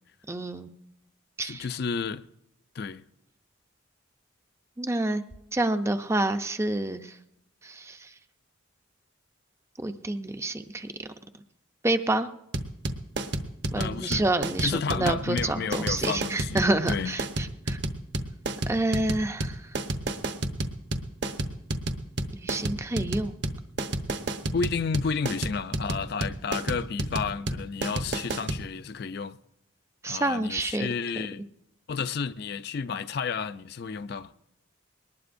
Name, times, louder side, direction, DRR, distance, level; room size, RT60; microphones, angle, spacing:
voice 1, 0.3-0.7 1.4-1.7 4.8-5.2 5.5-7.2 7.6-8.1 9.8-11.1 11.8-12.3 13.7-17.8 18.7-19.7 22.3-23.3 30.0-30.9 31.2-31.3, right 2 dB, 15° right, 0.5 m, -28 dB
voice 2, 1.4-2.2 2.7-3.0 13.8-14.2 14.6-17.1 24.5-29.4 30.1-31.4 31.9-34.3, left 5 dB, 50° left, 0.4 m, -31 dB
sound 1, 12.5-28.6, right 1 dB, 55° right, 1.0 m, -30 dB
21.5 x 19.0 x 2.6 m
head